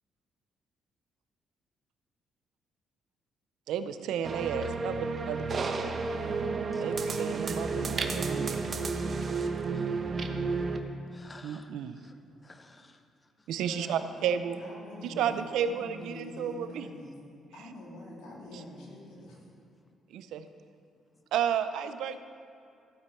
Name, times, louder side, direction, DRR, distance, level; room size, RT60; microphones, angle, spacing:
voice 1, 3.7-5.5 6.8-8.6 11.4-12.0 13.5-14.6 15.0-16.9 18.5-18.6 20.1-20.5 21.3-22.2, right 8 dB, 85° right, 11 dB, 0.6 m, -32 dB
sound 1, 4.2-10.8, right 4 dB, 45° right, 0.9 m, -31 dB
voice 2, 9.6-10.0 10.5-10.6 11.1-11.7 12.0-12.1 12.4-13.0, left 3 dB, 25° left, 8 dB, 0.6 m, -54 dB
voice 3, 13.7-17.1 17.5-19.4, left 1 dB, 85° left, -5 dB, 3.4 m, -45 dB
15.0 x 8.3 x 4.6 m, 2.5 s
cardioid pair, 90°, 0 cm